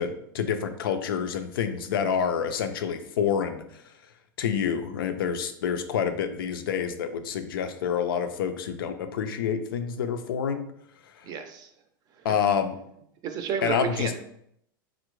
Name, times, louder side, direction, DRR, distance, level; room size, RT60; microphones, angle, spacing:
voice 1, 0.0-3.7 4.4-10.7 12.2-12.7 13.6-14.1, left 7 dB, 85° left, 8 dB, 0.4 m, -28 dB
voice 2, 11.2-11.7 12.1-12.3 13.2-14.2, right 7 dB, 35° right, 6 dB, 0.5 m, -32 dB
3.6 x 2.1 x 3.0 m, 0.72 s
supercardioid pair, 125°, 11 cm